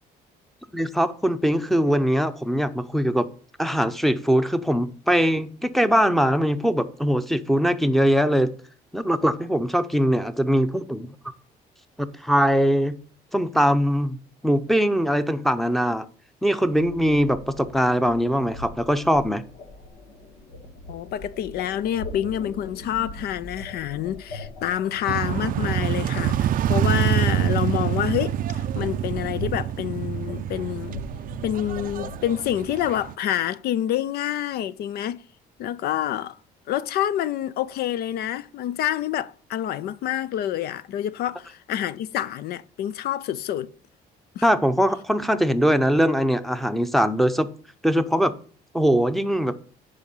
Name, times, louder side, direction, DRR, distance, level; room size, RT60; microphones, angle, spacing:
voice 1, 0.7-3.3 3.6-8.5 8.9-11.1 12.0-13.0 13.3-14.2 14.4-16.1 16.4-19.4 44.4-47.5 47.8-48.3 48.7-49.6, equal, ahead, 0.7 m, -21 dB
sound 1, 16.7-32.4, left 2 dB, 85° left, 1.9 m, -41 dB
voice 2, 20.9-31.0 31.4-35.2 35.6-36.4 36.7-43.7 44.4-44.5, left 11 dB, 65° left, 0.5 m, -27 dB
sound 2, 25.1-33.1, right 11 dB, 55° right, 0.4 m, -26 dB
9.8 x 5.0 x 5.5 m
cardioid pair, 110°, 17 cm